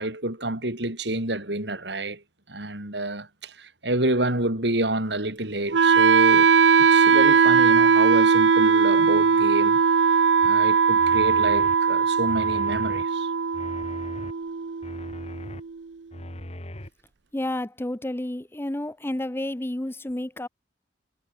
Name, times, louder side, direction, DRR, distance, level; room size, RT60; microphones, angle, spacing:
voice 1, 0.0-2.2 2.5-6.5 6.8-9.8 10.4-13.3, right 1 dB, 70° right, 5.2 m, -28 dB
Wind instrument woodwind instrument, 5.7-15.7, right 6 dB, 85° right, 0.6 m, -19 dB
sound 1, 10.4-10.5 11.0-11.8 12.3-13.0 13.5-14.3 14.8-15.6 16.1-16.9, left 1 dB, 35° left, 3.7 m, -39 dB
voice 2, 17.3-20.5, left 1 dB, 15° left, 0.7 m, -30 dB
head